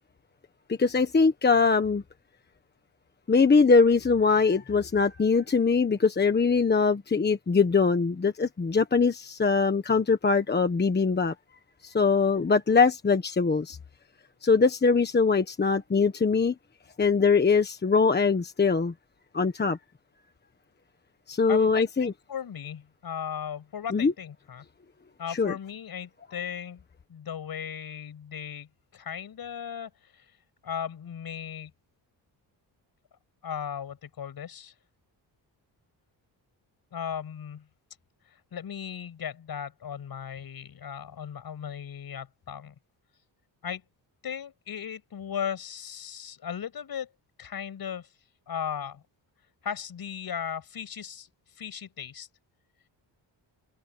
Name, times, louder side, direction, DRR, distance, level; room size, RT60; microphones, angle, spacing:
voice 1, 0.7-2.0 3.3-11.3 11.8-13.8 14.4-16.5 17.0-18.9 19.3-19.8 21.3-22.1 23.9-24.1 25.3-25.5, left 4 dB, 25° left, 1.3 m, -22 dB
voice 2, 21.5-24.6 25.2-26.8 27.1-30.2 30.6-31.7 33.4-34.7 36.9-37.7 38.3-42.7 43.6-43.8 44.2-47.1 47.4-48.1 48.5-49.0 49.6-51.3 51.6-52.3, left 8 dB, 55° left, 6.5 m, -37 dB
wide cardioid pair, 160°, 43 cm